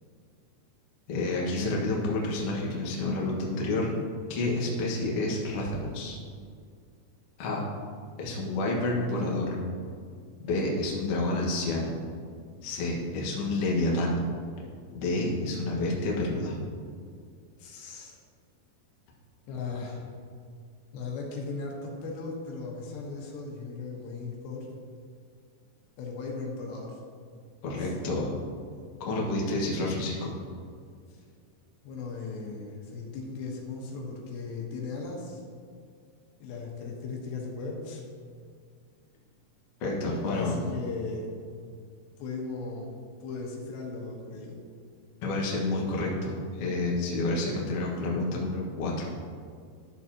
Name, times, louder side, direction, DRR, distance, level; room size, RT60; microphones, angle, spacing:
voice 1, 1.1-3.9 4.3-6.2 7.4-7.6 8.2-9.6 10.4-11.9 12.6-14.3 14.9-16.6 27.6-28.3 29.0-30.3 39.8-40.5 45.2-49.1, left 2 dB, 55° left, -4 dB, 1.7 m, -29 dB
voice 2, 17.6-18.2 19.5-20.1 20.9-24.7 26.0-27.0 27.8-27.9 31.8-35.4 36.4-38.0 40.2-41.3 42.2-44.6, left 4 dB, 85° left, -1 dB, 3.6 m, -37 dB
13.0 x 7.0 x 2.9 m, 2.2 s
omnidirectional pair, 4.9 m